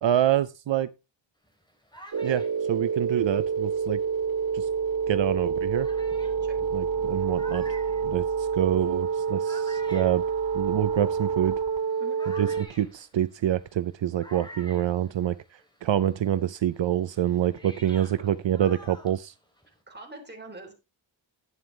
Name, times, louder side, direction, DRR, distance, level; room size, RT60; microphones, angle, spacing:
voice 1, 0.0-0.9 2.2-4.0 4.5-4.7 5.1-5.9 6.7-7.6 8.0-10.2 10.5-11.6 12.4-15.3 15.8-19.3, right 11 dB, 70° right, 0.6 m, -26 dB
sound 1, 1.4-4.5 5.1-5.2 5.7-15.8 16.0-19.8, equal, 10° left, 3.2 m, -50 dB
sound 2, 2.1-12.6, right 6 dB, 50° right, 1.2 m, -28 dB
voice 2, 19.7-20.7, right 2 dB, 20° right, 3.5 m, -44 dB
11.0 x 9.0 x 3.3 m
wide cardioid pair, 115°, 46 cm